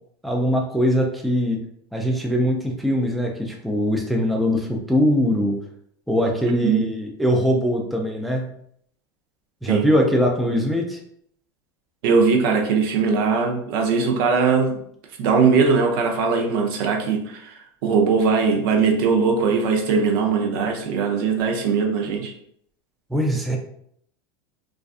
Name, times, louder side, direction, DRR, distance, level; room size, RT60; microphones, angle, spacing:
voice 1, 0.2-1.6 1.9-5.6 6.1-8.5 9.6-11.0 23.1-23.6, equal, ahead, 0 dB, 0.3 m, -21 dB
voice 2, 6.4-6.8 9.7-9.9 12.0-14.8 15.2-17.5 17.8-22.3, right 5 dB, 70° right, 2 dB, 0.6 m, -20 dB
2.4 x 2.3 x 2.4 m, 0.68 s
supercardioid pair, 125°, 13 cm